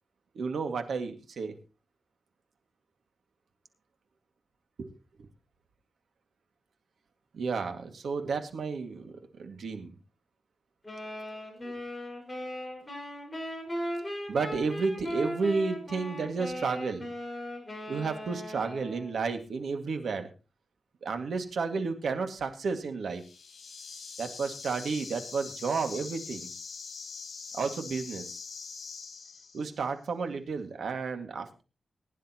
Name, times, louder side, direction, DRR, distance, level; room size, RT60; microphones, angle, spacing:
voice 1, 0.3-1.5 4.8-4.9 7.3-9.9 11.6-11.8 14.3-17.1 17.9-20.3 21.0-23.2 24.2-26.5 27.5-28.4 29.5-31.6, right 4 dB, 85° right, 6 dB, 2.1 m, -32 dB
sound 1, 10.8-19.2, equal, 15° left, 5.4 m, -38 dB
sound 2, 23.1-29.8, left 5 dB, 70° left, 3.5 m, -43 dB
21.0 x 10.5 x 3.0 m, 0.31 s
wide cardioid pair, 135°, 0 cm